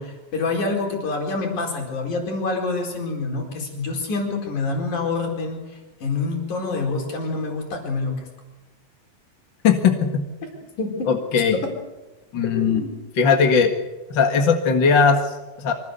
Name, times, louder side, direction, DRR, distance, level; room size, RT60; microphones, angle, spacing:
voice 1, 0.0-8.2 10.8-11.1 11.6-11.7 12.4-13.0, left 3 dB, 85° left, 2 dB, 5.9 m, -27 dB
voice 2, 9.6-10.2 11.1-11.6 12.3-12.8 13.2-13.7 14.1-15.7, left 5 dB, 45° left, 4 dB, 2.1 m, -19 dB
25.5 x 18.5 x 8.1 m, 1.1 s
omnidirectional pair, 3.4 m